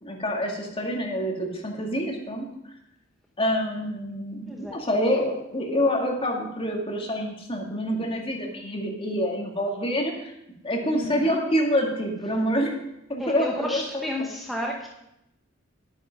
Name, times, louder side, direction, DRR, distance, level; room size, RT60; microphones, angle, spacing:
voice 1, 0.0-2.5 3.4-10.1 10.6-12.7 13.1-14.3, equal, 30° left, 0 dB, 2.1 m, -27 dB
voice 2, 4.5-4.8 10.9-11.4 13.2-14.9, left 1 dB, ahead, -1 dB, 0.9 m, -32 dB
10.0 x 9.2 x 5.2 m, 0.84 s
head